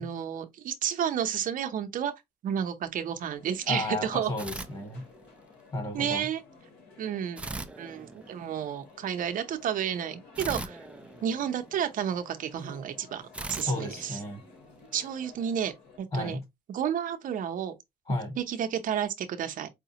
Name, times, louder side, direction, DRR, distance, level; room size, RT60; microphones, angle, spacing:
voice 1, 0.0-2.1 2.4-4.3 5.9-6.4 7.0-10.8 11.2-13.2 13.5-14.2 14.9-16.4 16.7-17.7 18.4-19.7, right 9 dB, 55° right, 0.7 m, -31 dB
sound 1, 3.2-16.0, left 4 dB, 75° left, 1.9 m, -54 dB
voice 2, 3.7-5.1 5.7-6.3 13.6-14.4 16.1-16.4 18.1-18.4, left 2 dB, 35° left, 1.7 m, -32 dB
sound 2, 4.4-5.5 7.4-8.7 10.3-12.0 13.3-14.9, right 2 dB, 5° right, 0.4 m, -41 dB
4.9 x 2.3 x 2.8 m
cardioid pair, 110°, 17 cm